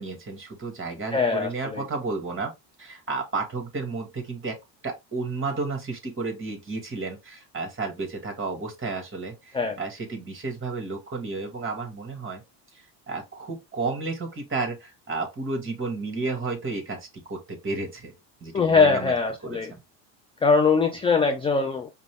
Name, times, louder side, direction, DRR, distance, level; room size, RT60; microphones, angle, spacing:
voice 1, 0.0-2.5 2.8-4.6 4.8-12.4 12.7-18.1 18.4-19.1 19.4-19.8, right 3 dB, 25° right, 1.8 m, -32 dB
voice 2, 1.1-1.8 9.5-9.8 18.5-19.7 20.4-21.9, left 4 dB, 15° left, 0.3 m, -22 dB
5.1 x 2.3 x 3.4 m
supercardioid pair, 105°, 49 cm